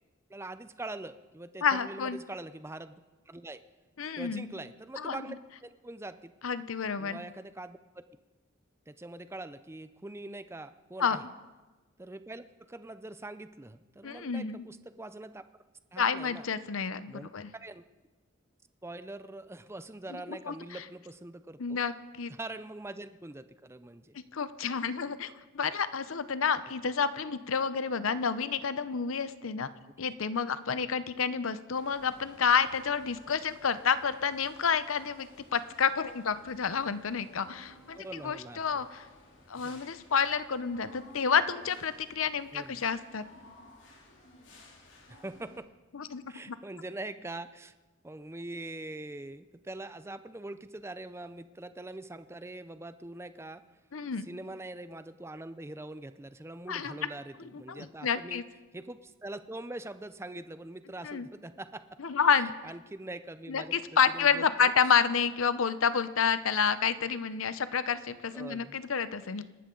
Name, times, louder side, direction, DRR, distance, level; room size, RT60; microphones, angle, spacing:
voice 1, 0.3-3.0 3.3-3.6 4.2-5.4 5.6-6.3 7.0-7.8 8.9-11.2 12.0-15.4 15.9-16.5 17.1-17.8 18.8-21.8 22.3-24.2 37.9-38.9 39.6-39.8 42.5-42.8 45.1-45.7 46.3-47.7 48.0-53.6 54.2-58.4 58.7-61.8 62.6-63.8 64.1-64.7 68.3-68.8, right 2 dB, 10° right, 12 dB, 0.5 m, -43 dB
voice 2, 1.6-2.2 4.0-4.5 5.0-5.2 6.4-7.2 11.0-11.2 14.0-14.7 16.0-17.5 20.1-20.8 21.6-22.3 24.1-29.7 30.0-39.0 39.5-43.2 45.9-46.6 53.9-54.3 56.7-57.1 57.5-58.4 61.0-61.3 62.0-62.5 63.5-69.4, left 6 dB, 75° left, 14 dB, 0.7 m, -29 dB
sound 1, 31.7-45.6, left 1 dB, 60° left, 3.0 m, -56 dB
26.0 x 12.5 x 3.9 m, 1.2 s
head